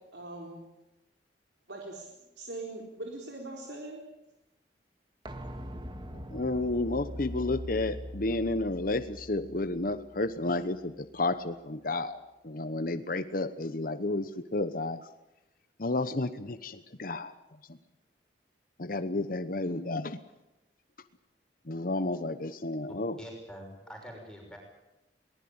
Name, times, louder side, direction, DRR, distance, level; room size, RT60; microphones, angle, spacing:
voice 1, 0.1-0.6 1.7-2.1 2.4-4.0, right 2 dB, 85° right, 0 dB, 4.1 m, -41 dB
sound 1, 5.2-10.9 11.2-11.3, equal, 25° right, 1.8 m, -42 dB
voice 2, 6.3-12.2 12.4-15.1 15.8-17.3 17.7-17.8 18.8-20.2 21.7-23.1, left 2 dB, 50° left, 11 dB, 1.0 m, -31 dB
voice 3, 23.2-24.6, equal, 5° left, 0 dB, 6.0 m, -45 dB
22.5 x 19.5 x 8.8 m, 0.96 s
head